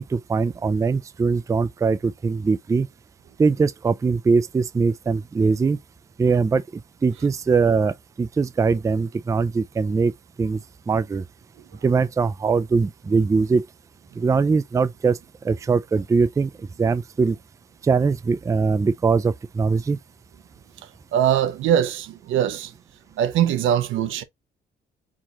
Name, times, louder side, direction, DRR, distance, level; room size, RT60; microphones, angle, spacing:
voice 1, 0.0-2.9 3.4-5.8 6.2-6.6 7.0-10.1 10.4-10.6 10.9-11.2 11.8-13.7 14.2-15.2 15.4-16.5 16.8-17.4 17.8-20.0, right 4 dB, 15° right, 0.3 m, -21 dB
voice 2, 21.1-22.7 23.2-24.2, right 10 dB, 85° right, 0.7 m, -21 dB
4.6 x 2.9 x 2.8 m
cardioid pair, 90°, 20 cm